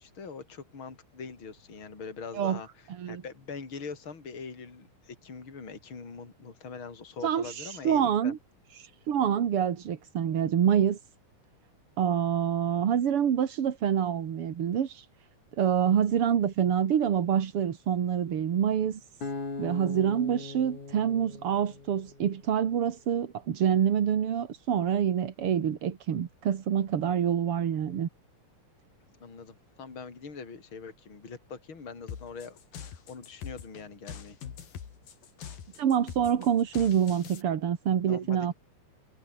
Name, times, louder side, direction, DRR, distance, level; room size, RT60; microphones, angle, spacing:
voice 1, 0.0-8.3 29.2-32.6 32.8-34.4 38.1-38.5, left 5 dB, 35° left, 4.9 m, -43 dB
voice 2, 7.2-8.4 8.8-11.0 12.0-15.1 15.6-19.0 19.6-28.1 35.8-38.5, right 8 dB, 50° right, 2.2 m, -26 dB
Acoustic guitar, 19.2-22.4, left 3 dB, 60° left, 8.5 m, -40 dB
sound 1, 32.1-37.4, left 8 dB, 85° left, 4.6 m, -43 dB
omnidirectional pair, 4.0 m